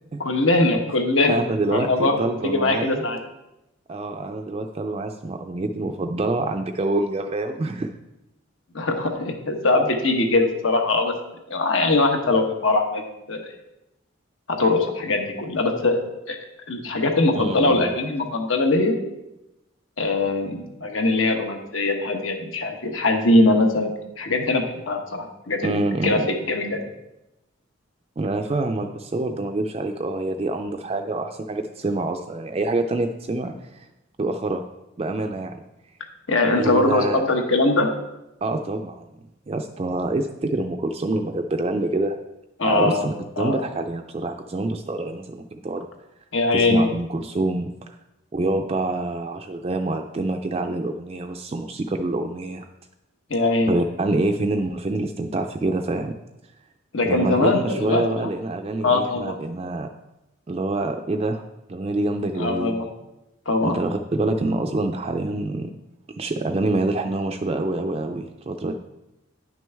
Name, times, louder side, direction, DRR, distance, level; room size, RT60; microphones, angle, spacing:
voice 1, 0.2-1.4 1.7-2.2 2.4-3.2 8.7-11.1 11.5-13.0 13.3-13.4 14.5-16.0 16.3-16.4 16.7-18.9 20.0-23.9 24.2-25.8 26.0-26.2 26.5-26.8 36.3-37.9 42.6-43.0 43.4-43.6 46.3-46.9 53.3-53.8 56.9-58.3 58.8-59.4 62.4-62.9 63.5-63.8, left 2 dB, 80° left, 4 dB, 1.2 m, -21 dB
voice 2, 1.3-3.0 3.9-7.9 17.3-17.8 25.6-26.3 28.2-33.9 34.2-34.6 35.0-35.6 36.5-37.2 38.4-39.0 39.5-42.2 42.6-45.8 46.5-48.0 48.3-52.7 53.7-56.1 57.0-59.9 60.5-61.4 61.7-62.8 63.6-65.7 66.1-68.7, right 2 dB, 30° right, 5 dB, 0.3 m, -26 dB
9.9 x 6.1 x 3.4 m, 0.93 s
head